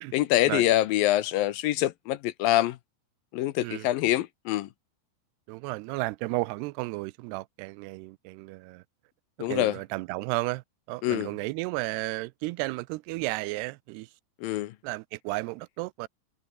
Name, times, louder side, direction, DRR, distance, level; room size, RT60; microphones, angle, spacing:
voice 1, 0.1-2.8 3.3-4.7 9.4-9.8 11.0-11.3 14.4-14.7, left 14 dB, 75° left, 2.4 m, -25 dB
voice 2, 5.5-8.8 9.4-14.1 14.8-16.1, right 22 dB, 90° right, 2.7 m, -33 dB
omnidirectional pair, 4.6 m